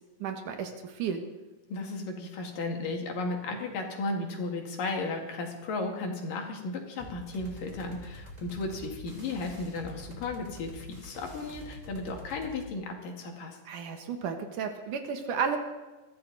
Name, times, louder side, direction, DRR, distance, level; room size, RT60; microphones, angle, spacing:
voice 1, 0.2-1.2 13.7-15.6, right 6 dB, 75° right, 5 dB, 2.9 m, -33 dB
voice 2, 1.7-13.6, left 3 dB, 85° left, 2 dB, 3.8 m, -35 dB
sound 1, 7.0-12.6, left 1 dB, 15° right, 2.7 m, -46 dB
21.5 x 14.0 x 4.1 m, 1.2 s
omnidirectional pair, 3.8 m